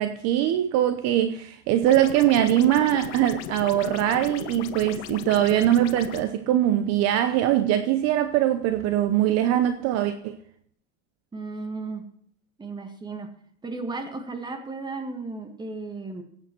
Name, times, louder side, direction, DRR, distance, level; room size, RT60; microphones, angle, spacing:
voice 1, 0.0-10.4, right 12 dB, 45° right, 0.8 m, -22 dB
sound 1, 1.8-6.2, left 12 dB, 75° left, 1.2 m, -37 dB
voice 2, 11.3-12.0 12.6-13.3 13.6-16.2, right 3 dB, 10° right, 1.7 m, -34 dB
15.5 x 8.9 x 4.5 m
supercardioid pair, 140°, 35 cm